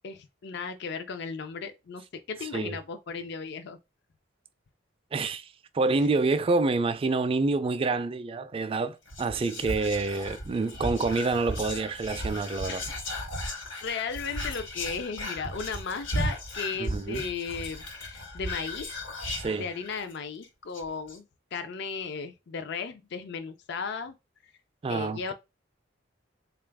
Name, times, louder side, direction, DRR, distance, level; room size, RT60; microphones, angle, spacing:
voice 1, 0.0-3.8 12.7-12.8 13.8-18.9 19.6-21.3 21.5-24.2 24.9-25.3, left 5 dB, 65° left, 0.4 m, -35 dB
voice 2, 5.1-12.8 16.8-17.2 19.4-19.7 24.8-25.3, right 3 dB, 30° right, 0.3 m, -27 dB
Whispering, 9.1-20.1 20.4-20.5 20.7-21.2, left 1 dB, 80° left, 1.1 m, -36 dB
3.8 x 2.4 x 3.4 m
head